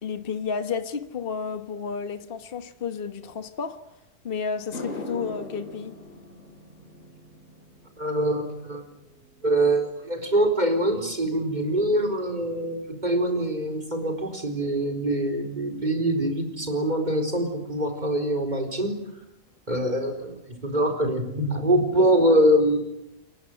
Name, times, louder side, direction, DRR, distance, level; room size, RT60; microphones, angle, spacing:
voice 1, 0.0-3.8 4.2-5.9, left 5 dB, 45° left, 1.4 m, -31 dB
sound 1, 4.0-4.1 4.5-13.0 13.3-13.7 17.3-17.4 19.1-19.2 19.5-19.6 19.9-20.4, left 2 dB, 70° left, 8.8 m, -43 dB
voice 2, 8.0-8.8 9.4-19.0 19.7-22.8, right 1 dB, 30° right, 4.4 m, -24 dB
29.5 x 23.0 x 7.9 m
omnidirectional pair, 1.4 m